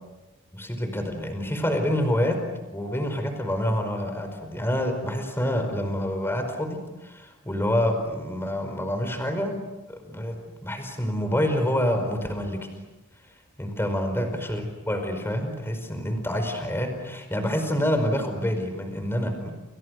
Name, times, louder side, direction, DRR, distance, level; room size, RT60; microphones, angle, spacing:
voice 1, 0.5-2.4 2.7-9.5 9.9-10.4 10.6-12.6 13.6-19.5, equal, 10° left, 6 dB, 5.0 m, -27 dB
29.5 x 29.0 x 6.6 m, 1.0 s
head